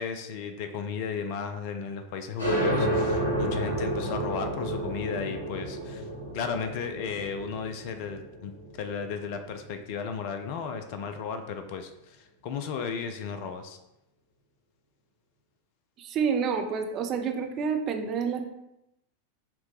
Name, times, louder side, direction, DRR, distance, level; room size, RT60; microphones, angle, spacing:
voice 1, 0.0-6.1 6.3-13.8, left 6 dB, 45° left, 7 dB, 0.4 m, -35 dB
sound 1, 2.4-9.7, right 1 dB, 75° left, 1.0 m, -30 dB
voice 2, 16.0-18.4, right 6 dB, 35° right, 5 dB, 0.5 m, -28 dB
5.8 x 2.1 x 3.2 m, 0.88 s
figure-of-eight pair, 90°, 0 cm